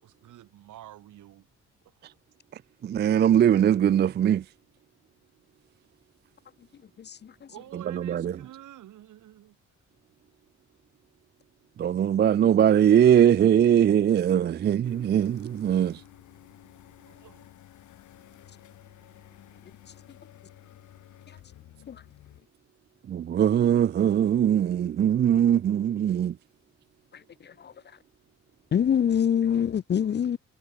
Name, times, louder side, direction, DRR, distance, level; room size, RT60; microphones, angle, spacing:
voice 1, 0.0-1.5 7.5-9.6 17.1-17.5 29.1-29.2 29.5-29.8 30.1-30.4, right 13 dB, 80° right, 7.8 m, -49 dB
voice 2, 2.8-4.4 7.9-8.4 11.8-16.0 23.1-26.3, right 9 dB, 35° right, 0.4 m, -21 dB
voice 3, 7.0-7.5 21.3-21.4 21.9-22.0 27.1-27.7 28.7-30.4, left 8 dB, 35° left, 0.5 m, -26 dB
sound 1, 14.8-22.4, left 13 dB, 75° left, 2.3 m, -52 dB
cardioid pair, 90°, 30 cm